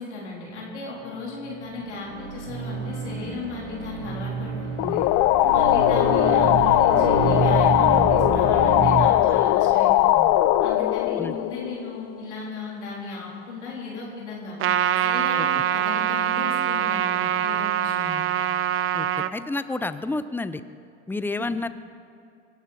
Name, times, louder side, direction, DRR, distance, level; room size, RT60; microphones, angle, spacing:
voice 1, 0.0-5.0 5.5-10.3 10.6-14.6 15.0-18.2 21.4-21.5, left 4 dB, 85° left, -4 dB, 3.7 m, -36 dB
sound 1, 1.6-9.1, right 5 dB, 60° right, 3.3 m, -28 dB
sound 2, 4.8-12.2, left 14 dB, 50° left, 0.6 m, -20 dB
Trumpet, 14.6-19.3, right 11 dB, 40° right, 0.7 m, -24 dB
voice 2, 19.3-20.6 21.1-21.7, left 2 dB, 5° left, 13 dB, 0.7 m, -29 dB
24.0 x 12.0 x 4.3 m, 2.5 s
hypercardioid pair, 80°, 34 cm